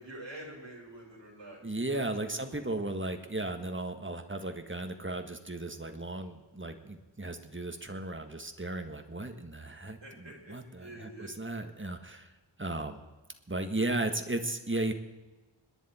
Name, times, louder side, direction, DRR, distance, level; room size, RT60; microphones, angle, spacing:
voice 1, 0.0-2.7 10.0-11.3, right 1 dB, 65° right, -2 dB, 5.4 m, -47 dB
voice 2, 1.6-12.3 12.6-13.0 13.5-14.9, right 2 dB, 25° right, 6 dB, 1.6 m, -35 dB
27.0 x 10.5 x 4.4 m, 1.2 s
wide cardioid pair, 45°, 46 cm